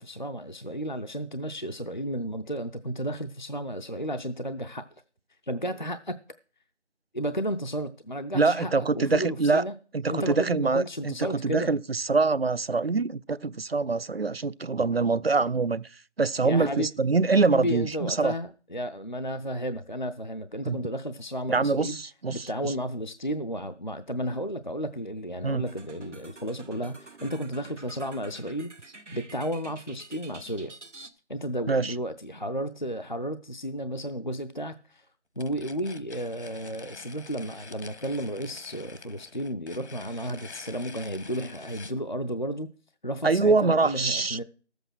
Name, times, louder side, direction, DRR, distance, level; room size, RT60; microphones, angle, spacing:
voice 1, 0.0-4.8 5.4-6.2 7.1-9.8 10.1-11.7 16.4-16.9 17.5-22.0 22.3-28.7 29.1-30.7 31.3-35.1 35.4-42.7 43.0-44.4, equal, 45° left, 0.5 m, -33 dB
voice 2, 8.3-9.6 9.9-15.9 16.2-18.3 20.7-20.8 21.5-22.7 25.4-25.6 31.7-31.9 43.2-44.4, right 4 dB, 60° right, 0.5 m, -24 dB
sound 1, 25.7-31.1, right 3 dB, 85° right, 1.5 m, -48 dB
sound 2, 35.4-42.0, left 4 dB, 70° left, 1.2 m, -47 dB
12.0 x 7.9 x 6.2 m
figure-of-eight pair, 175°, 35 cm